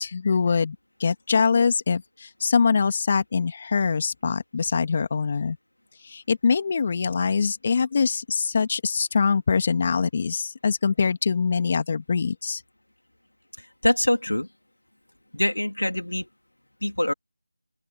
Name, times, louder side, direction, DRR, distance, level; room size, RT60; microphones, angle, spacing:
voice 1, 0.0-5.6 6.0-12.6, left 5 dB, 35° left, 2.3 m, -23 dB
voice 2, 13.6-14.5 15.3-16.3 16.8-17.1, left 1 dB, 90° left, 3.1 m, -24 dB
open air
figure-of-eight pair, 165°, 0 cm